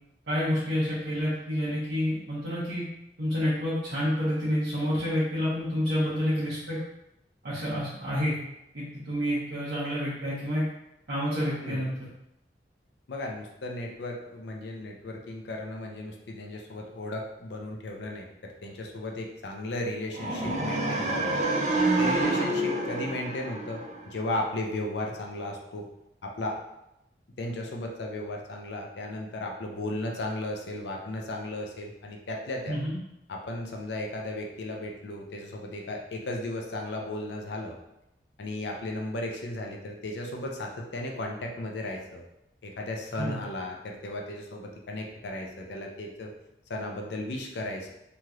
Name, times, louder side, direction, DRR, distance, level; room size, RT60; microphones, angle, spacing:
voice 1, 0.3-2.8 3.2-6.8 7.4-8.4 8.7-10.7 11.1-12.1 32.7-33.0 43.1-43.4, equal, 80° right, -11 dB, 1.0 m, -29 dB
voice 2, 13.1-21.4 22.0-25.9 26.2-26.6 27.4-32.8 33.3-37.7 38.4-42.2 42.6-46.3 46.7-47.9, left 1 dB, 80° left, 1 dB, 0.5 m, -35 dB
sound 1, 20.1-24.2, right 2 dB, 40° right, 0.4 m, -28 dB
3.1 x 2.9 x 2.4 m, 0.86 s
head